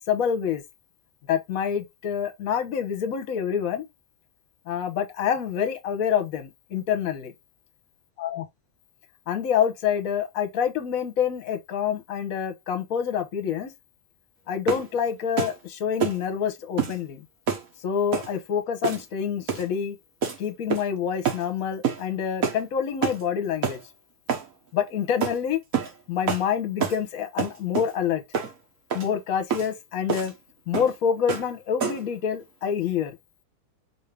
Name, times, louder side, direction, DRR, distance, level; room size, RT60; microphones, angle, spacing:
voice 1, 0.1-0.6 1.3-3.8 4.7-7.3 8.2-8.4 9.3-13.7 14.5-17.2 17.8-20.0 20.4-23.8 24.7-25.6 26.1-28.2 28.9-30.3 30.7-33.1, left 8 dB, 65° left, 1.3 m, -27 dB
sound 1, 14.7-14.9 15.4-15.6 16.0-16.2 16.8-17.0 17.5-17.7 18.1-18.3 18.8-19.1 19.5-19.7 20.2-20.4 20.7-21.0 21.2-21.4 21.8-22.0 22.4-22.6 23.0-23.2 23.6-23.8 24.3-24.5 25.2-25.4 25.7-25.9 26.3-26.5 26.8-27.0 27.4-27.9 28.3-28.5 28.9-29.1 29.5-29.7 30.1-30.3 30.7-30.9 31.3-31.5 31.8-32.1, right 6 dB, 65° right, 1.5 m, -27 dB
4.8 x 2.7 x 3.2 m
omnidirectional pair, 1.6 m